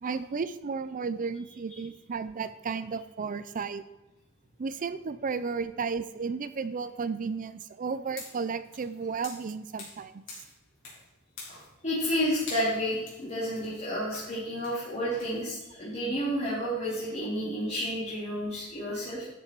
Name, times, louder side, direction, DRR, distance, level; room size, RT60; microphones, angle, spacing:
voice 1, 0.0-3.8 4.6-10.2 16.6-16.7, right 5 dB, 40° right, 14 dB, 0.4 m, -33 dB
sound 1, 8.1-10.0 10.3-11.1 11.3-12.2 12.5-15.4, left 3 dB, 65° left, 4.1 m, -46 dB
voice 2, 11.5-19.3, equal, 35° left, -8 dB, 3.1 m, -31 dB
13.0 x 6.9 x 4.6 m, 1.0 s
head